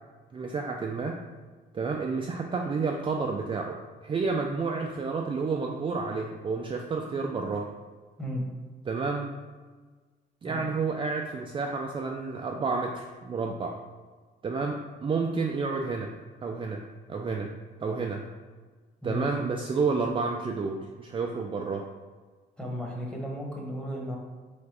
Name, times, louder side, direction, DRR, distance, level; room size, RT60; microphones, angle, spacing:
voice 1, 0.3-1.2 1.7-7.7 8.9-9.4 10.4-13.8 14.4-16.1 16.4-16.8 17.1-17.5 17.8-18.3 19.0-21.9, right 4 dB, 25° right, 1 dB, 0.3 m, -30 dB
voice 2, 22.6-24.2, equal, 5° left, -1 dB, 1.0 m, -34 dB
3.9 x 3.5 x 3.3 m, 1.4 s
cardioid pair, 90°, 20 cm